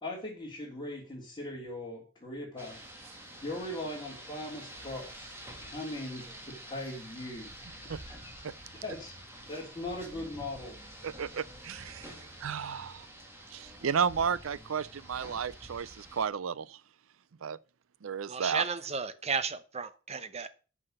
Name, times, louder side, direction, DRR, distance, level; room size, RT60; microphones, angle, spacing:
voice 1, 0.0-2.9 3.4-5.3 5.6-7.5 7.8-8.4 8.8-9.1 9.5-11.1, left 1 dB, 20° left, 3.4 m, -40 dB
Rain, 2.6-16.2, right 1 dB, 10° right, 2.0 m, -48 dB
voice 2, 11.0-12.1 12.4-13.1 13.5-16.8 17.4-17.6 18.0-18.6, right 7 dB, 80° right, 0.5 m, -33 dB
voice 3, 18.3-20.5, right 5 dB, 30° right, 0.8 m, -33 dB
9.9 x 6.0 x 6.4 m
head